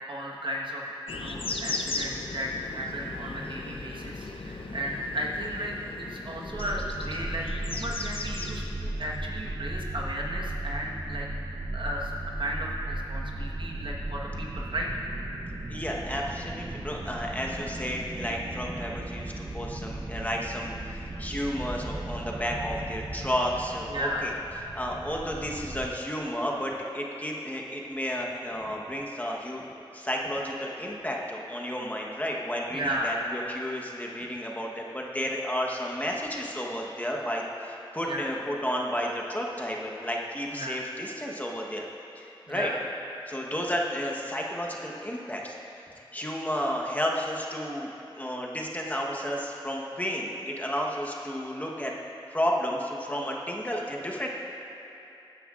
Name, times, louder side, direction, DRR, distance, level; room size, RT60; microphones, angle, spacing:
voice 1, 0.0-11.3 11.7-14.9 23.9-24.3 32.7-33.2 38.0-38.3 40.5-40.8 42.5-42.8, equal, 60° right, -2 dB, 1.3 m, -34 dB
sound 1, 1.1-9.6, left 3 dB, 75° left, 0.7 m, -37 dB
sound 2, 6.5-25.9, right 2 dB, 45° right, 0.7 m, -36 dB
voice 2, 15.7-24.3 24.7-29.7 29.9-41.9 42.2-42.7 43.3-45.5 46.1-51.9 52.3-54.3, equal, 15° left, -2 dB, 1.1 m, -32 dB
15.5 x 10.0 x 2.5 m, 2.9 s
wide cardioid pair, 70°, 9 cm